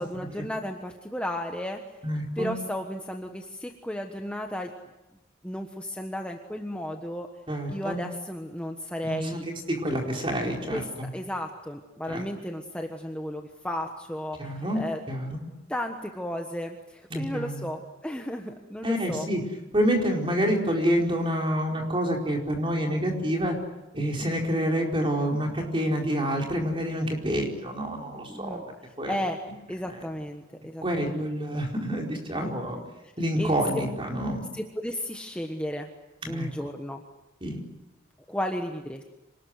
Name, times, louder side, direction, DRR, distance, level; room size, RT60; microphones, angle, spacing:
voice 1, 0.0-1.8 2.4-4.7 5.4-7.3 7.7-9.4 10.7-10.8 11.1-15.0 15.7-19.3 28.3-28.6 29.1-29.4 29.7-31.3 32.3-32.8 33.4-33.5 34.5-35.9 36.3-37.0 38.3-39.0, equal, 5° left, 3 dB, 1.3 m, -34 dB
voice 2, 2.0-2.6 7.5-8.0 9.0-11.1 12.1-12.2 14.4-15.4 17.1-17.7 18.8-19.4 19.7-23.6 23.9-28.6 29.0-29.1 29.9-30.0 30.8-32.8 33.2-34.5 36.2-36.5 37.4-37.6, equal, 25° right, 1 dB, 4.6 m, -28 dB
26.5 x 19.5 x 9.6 m, 1.0 s
head